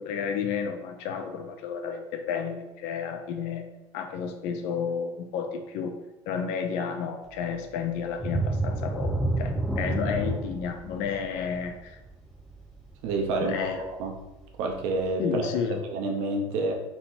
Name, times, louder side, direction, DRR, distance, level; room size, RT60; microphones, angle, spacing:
voice 1, 0.0-6.0 6.3-12.0 13.4-13.8 15.2-15.8, left 6 dB, 85° left, 6 dB, 0.6 m, -31 dB
sound 1, 8.2-13.6 14.1-14.2 14.7-14.8, right 2 dB, ahead, 0.7 m, -30 dB
voice 2, 13.0-13.7 14.0-14.2 14.6-16.7, right 3 dB, 85° right, 3 dB, 0.7 m, -29 dB
4.1 x 2.9 x 3.8 m, 1.0 s
cardioid pair, 140°, 11 cm